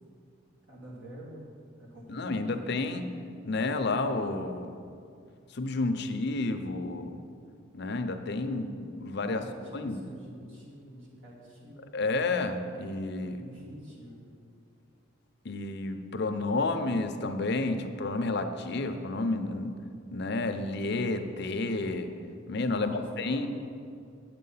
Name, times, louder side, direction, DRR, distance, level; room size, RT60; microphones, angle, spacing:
voice 1, 0.7-1.5 1.8-2.5 9.4-11.9 13.3-14.2 22.7-23.5, equal, 75° right, -4 dB, 2.6 m, -47 dB
voice 2, 2.1-3.1 3.4-4.8 5.5-7.2 7.7-9.4 9.7-10.0 11.9-13.4 15.4-19.7 20.1-22.1 22.5-23.5, left 2 dB, 60° left, 7 dB, 0.6 m, -30 dB
8.8 x 7.5 x 5.6 m, 2.4 s
head